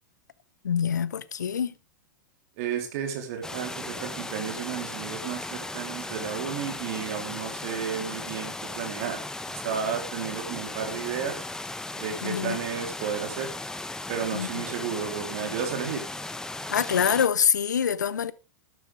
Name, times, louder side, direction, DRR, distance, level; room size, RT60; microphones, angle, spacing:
voice 1, 0.6-1.7 12.2-12.6 14.3-14.5 16.7-18.3, left 7 dB, 70° left, 1.0 m, -25 dB
voice 2, 2.6-11.5 11.9-13.5 14.1-16.0, right 7 dB, 50° right, 3.5 m, -33 dB
sound 1, 3.4-17.3, left 2 dB, 5° left, 1.3 m, -36 dB
13.5 x 12.5 x 3.5 m
figure-of-eight pair, 95°, 10 cm